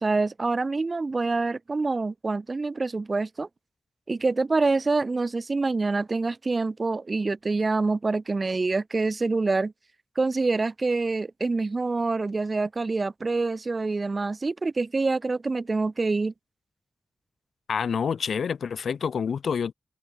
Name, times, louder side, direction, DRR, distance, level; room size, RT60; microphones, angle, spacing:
voice 1, 0.0-3.5 4.1-9.7 10.2-16.3, right 3 dB, 45° right, 0.7 m, -26 dB
voice 2, 17.7-19.7, left 6 dB, 85° left, 0.4 m, -27 dB
open air
cardioid pair, 50°, 0 cm